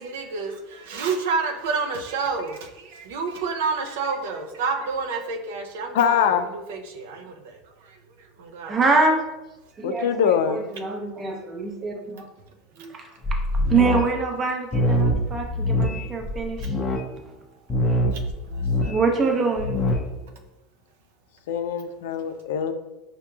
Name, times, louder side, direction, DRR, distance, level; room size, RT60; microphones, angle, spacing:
voice 1, 0.0-9.0 15.3-16.0 18.1-18.2 18.5-19.5, right 4 dB, 90° right, 4 dB, 0.5 m, -30 dB
voice 2, 5.9-6.5 9.8-10.6 21.5-22.7, left 8 dB, 90° left, 9 dB, 0.3 m, -23 dB
voice 3, 8.7-9.2 9.8-10.1 10.5-12.2 12.8-12.9 13.7-16.6 18.9-19.9, right 4 dB, 25° right, 2 dB, 0.6 m, -24 dB
sound 1, 13.2-14.0 14.7-17.0 17.7-18.9 19.6-19.9, left 1 dB, 20° left, 0.5 m, -23 dB
4.9 x 2.8 x 2.3 m, 1.0 s
supercardioid pair, 145°, 0 cm